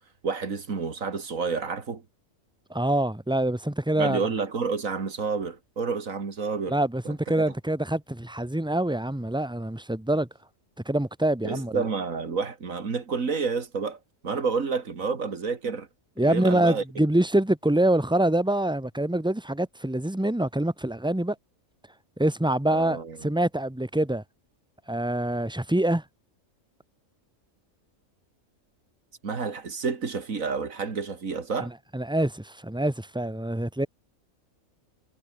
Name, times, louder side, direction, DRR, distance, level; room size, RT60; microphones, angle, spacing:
voice 1, 0.2-2.0 3.9-6.8 7.0-7.4 11.4-15.9 16.2-16.8 22.7-23.2 29.2-31.7, right 5 dB, 90° right, 2.6 m, -30 dB
voice 2, 2.7-4.2 6.7-10.3 10.8-11.8 16.2-21.3 22.2-24.2 24.9-26.0 31.6-33.9, right 1 dB, 5° right, 1.1 m, -25 dB
omnidirectional pair, 1.4 m